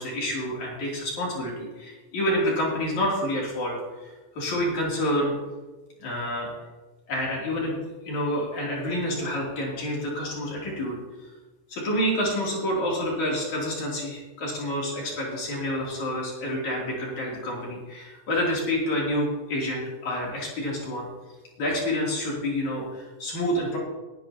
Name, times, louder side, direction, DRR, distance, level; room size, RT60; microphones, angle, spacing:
voice 1, 0.0-3.8 4.0-5.3 6.0-6.5 7.1-11.0 11.7-21.1 21.6-23.8, equal, 60° left, -4 dB, 4.2 m, -28 dB
20.5 x 11.0 x 2.9 m, 1.2 s
omnidirectional pair, 3.8 m